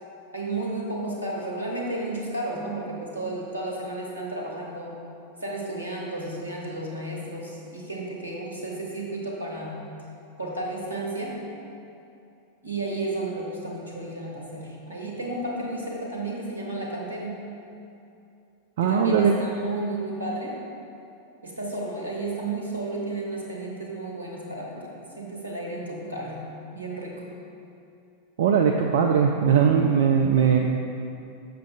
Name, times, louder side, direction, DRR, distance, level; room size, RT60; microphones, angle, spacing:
voice 1, 0.3-5.0 5.4-9.9 10.4-11.4 12.6-17.4 18.8-20.6 21.4-27.3, right 2 dB, 80° right, -2 dB, 1.1 m, -32 dB
voice 2, 18.8-19.3 28.4-30.6, right 7 dB, 55° right, 2 dB, 0.3 m, -20 dB
6.7 x 6.2 x 3.2 m, 2.6 s
figure-of-eight pair, 90°, 0 cm